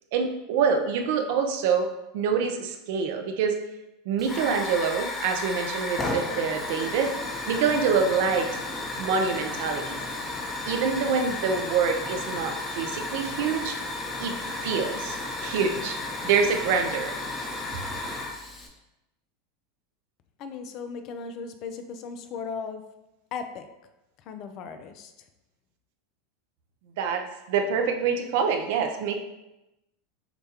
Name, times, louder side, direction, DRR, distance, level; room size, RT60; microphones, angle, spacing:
voice 1, 0.1-3.6 4.1-7.2 7.5-8.5 9.0-10.0 10.7-13.8 14.2-16.0 16.2-17.2 27.0-29.1, right 6 dB, 65° right, 5 dB, 0.5 m, -26 dB
Hiss / Fire, 4.2-18.7, left 2 dB, 25° left, 0.8 m, -33 dB
voice 2, 20.4-22.8 23.3-23.7 24.2-25.1, left 5 dB, 50° left, 9 dB, 0.5 m, -37 dB
6.6 x 2.3 x 2.8 m, 0.95 s
hypercardioid pair, 95°, 0 cm